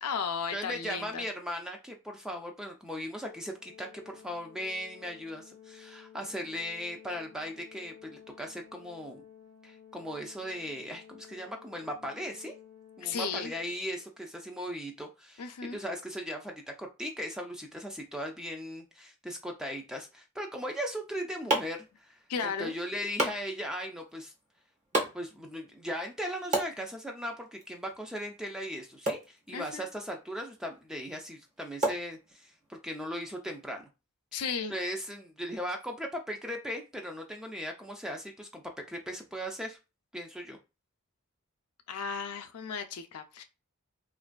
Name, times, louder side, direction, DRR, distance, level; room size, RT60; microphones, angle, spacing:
voice 1, 0.0-1.3 13.0-13.5 15.4-15.8 22.3-22.7 29.5-29.8 34.3-34.7 41.9-43.4, left 6 dB, 85° left, 0.5 m, -35 dB
voice 2, 0.5-9.2 9.6-12.5 13.0-24.3 25.1-33.9 34.7-39.8 40.1-40.6, equal, 5° right, 0.3 m, -38 dB
Organ, 3.2-14.1, left 8 dB, 35° left, 0.7 m, -54 dB
sound 1, 20.8-32.8, right 1 dB, 35° right, 0.8 m, -37 dB
3.2 x 2.5 x 2.2 m
head